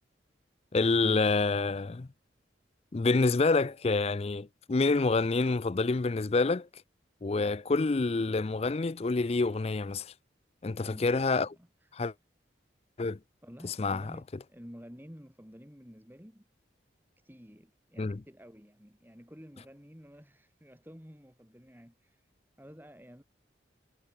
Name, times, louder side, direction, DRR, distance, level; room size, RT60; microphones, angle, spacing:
voice 1, 0.7-2.1 2.9-6.7 7.2-10.1 10.6-11.5 11.9-12.1 13.0-13.2 13.8-14.1 18.0-18.2, left 3 dB, 35° left, 0.4 m, -27 dB
voice 2, 10.9-11.3 11.6-11.9 13.4-16.4 17.2-22.3 22.6-23.2, equal, 10° right, 4.4 m, -51 dB
head